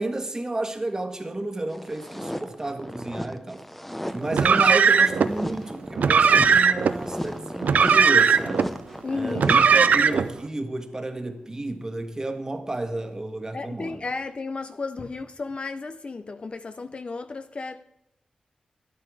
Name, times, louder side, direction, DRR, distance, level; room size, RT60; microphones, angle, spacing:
voice 1, 0.0-3.7 4.1-8.8 9.1-14.0, right 2 dB, 25° right, 1.5 m, -32 dB
sound 1, 1.7-10.3, equal, 5° left, 0.7 m, -35 dB
Car, 4.3-5.3 6.0-6.9 7.6-8.7 9.3-10.3, right 6 dB, 85° right, 0.5 m, -18 dB
voice 2, 9.0-9.7 13.5-17.9, left 3 dB, 45° left, 0.6 m, -33 dB
12.0 x 11.5 x 4.9 m
wide cardioid pair, 80°, 3 cm